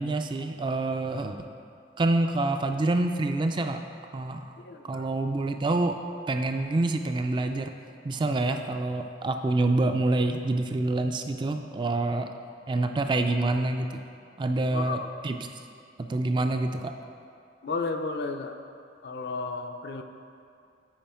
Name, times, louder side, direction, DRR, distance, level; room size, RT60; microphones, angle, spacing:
voice 1, 0.0-1.4 2.0-3.8 4.1-4.5 4.9-6.0 6.3-7.7 8.0-12.3 12.7-14.0 14.4-15.4 16.1-16.9, right 2 dB, 25° right, 6 dB, 0.3 m, -27 dB
voice 2, 4.6-5.0 14.7-15.1 17.6-18.5 19.0-20.0, left 4 dB, 65° left, 5 dB, 0.5 m, -33 dB
8.8 x 4.8 x 4.3 m, 2.4 s
head